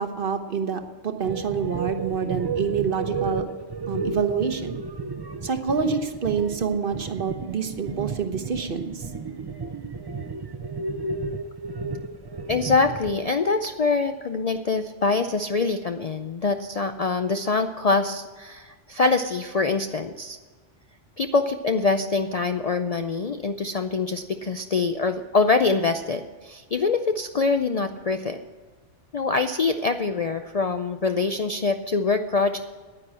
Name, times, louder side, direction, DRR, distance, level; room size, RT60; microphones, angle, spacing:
voice 1, 0.0-3.5 3.9-4.8 5.4-9.0, right 6 dB, 50° right, 6 dB, 1.2 m, -27 dB
sound 1, 1.2-13.1, right 4 dB, 30° right, 0.5 m, -33 dB
voice 2, 12.5-20.4 21.2-28.4 29.1-32.6, left 4 dB, 50° left, 8 dB, 0.5 m, -24 dB
9.9 x 9.9 x 7.5 m, 1.4 s
omnidirectional pair, 1.2 m